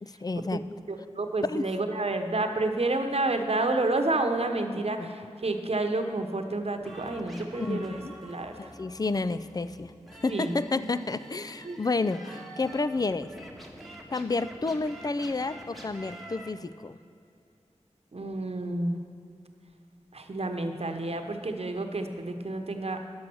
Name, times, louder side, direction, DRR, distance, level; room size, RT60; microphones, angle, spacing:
voice 1, 0.0-0.6 1.4-1.6 4.6-5.1 7.6-8.1 8.6-9.9 10.2-13.3 14.1-17.0, left 3 dB, 30° left, 13 dB, 0.4 m, -30 dB
voice 2, 0.9-8.7 10.3-10.6 11.6-11.8 18.1-19.0 20.1-23.0, right 2 dB, 55° right, 5 dB, 1.0 m, -30 dB
sound 1, 6.8-16.5, right 1 dB, ahead, 1.6 m, -46 dB
10.5 x 7.4 x 6.2 m, 2.5 s
cardioid pair, 40°, 12 cm